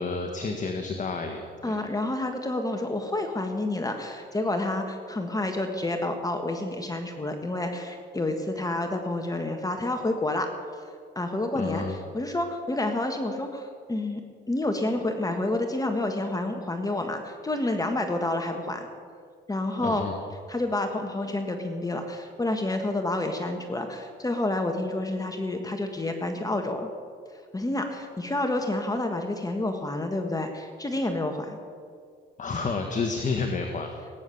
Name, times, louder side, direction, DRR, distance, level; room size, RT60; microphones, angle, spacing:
voice 1, 0.0-1.8 11.5-11.9 19.8-20.2 32.4-33.9, left 4 dB, 40° left, 4 dB, 1.5 m, -30 dB
voice 2, 1.6-10.5 11.2-14.2 14.5-18.9 19.5-20.0 20.5-26.9 27.5-31.6, left 2 dB, 20° left, 4 dB, 1.6 m, -29 dB
19.0 x 9.5 x 7.1 m, 2.1 s
cardioid pair, 90°, 20 cm